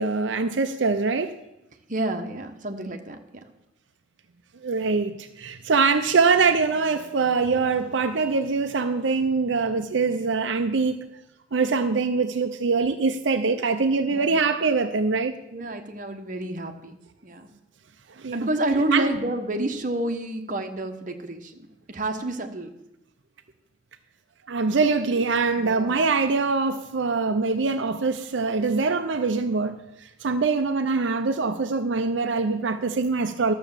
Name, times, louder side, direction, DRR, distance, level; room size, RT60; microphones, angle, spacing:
voice 1, 0.0-1.3 4.6-11.1 11.5-15.3 18.2-18.4 18.9-19.1 24.5-33.5, right 4 dB, 75° right, 7 dB, 0.6 m, -23 dB
voice 2, 1.9-3.4 14.1-14.4 15.5-17.5 18.3-22.7 25.6-26.1, right 1 dB, 45° right, 5 dB, 1.1 m, -29 dB
12.0 x 7.0 x 7.2 m, 0.90 s
head